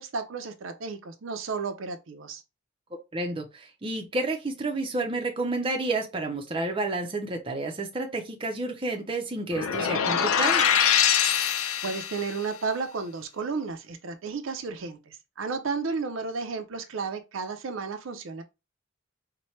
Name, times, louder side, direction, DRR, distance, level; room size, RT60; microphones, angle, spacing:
voice 1, 0.0-2.4 11.4-18.4, right 4 dB, 70° right, 0.5 m, -33 dB
voice 2, 3.1-10.6, right 2 dB, 25° right, 0.5 m, -30 dB
sound 1, 9.5-12.3, left 8 dB, 85° left, 0.5 m, -23 dB
4.2 x 2.2 x 3.1 m
head